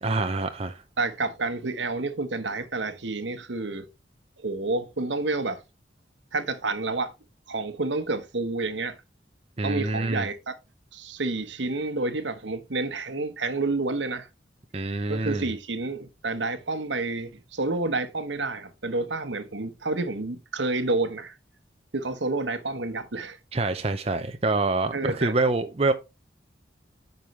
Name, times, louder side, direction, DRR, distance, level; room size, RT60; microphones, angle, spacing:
voice 1, 0.0-0.8 9.6-10.3 14.7-15.5 23.5-25.9, right 2 dB, 35° right, 0.6 m, -26 dB
voice 2, 1.0-3.9 4.4-5.6 6.3-7.1 7.5-9.0 9.6-10.5 10.9-14.3 15.1-21.4 21.9-23.4 24.9-25.4, right 3 dB, 80° right, 1.1 m, -29 dB
9.5 x 5.4 x 3.2 m
head